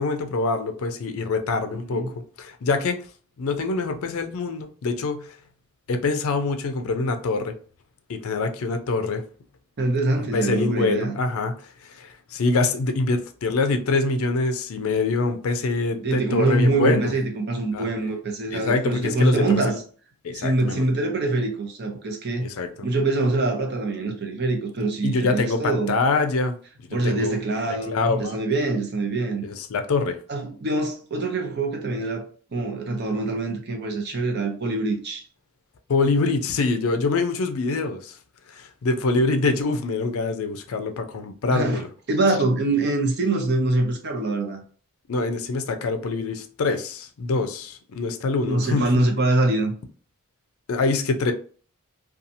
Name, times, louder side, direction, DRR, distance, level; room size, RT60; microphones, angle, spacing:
voice 1, 0.0-2.0 2.4-3.0 3.4-5.3 5.9-7.5 8.1-9.2 10.2-11.5 11.9-17.1 17.7-17.8 18.5-19.8 20.2-20.9 22.4-22.9 25.0-26.6 26.9-27.4 27.9-28.4 29.4-30.2 35.9-38.2 38.5-41.9 45.1-48.9 50.7-51.3, left 3 dB, 70° left, 0.4 m, -25 dB
voice 2, 1.7-2.1 9.8-11.1 16.0-19.7 20.3-22.5 22.8-25.9 26.9-29.4 30.3-32.3 32.5-35.2 41.5-44.6 48.5-49.7, right 2 dB, 50° right, 0.7 m, -24 dB
2.7 x 2.3 x 2.6 m
head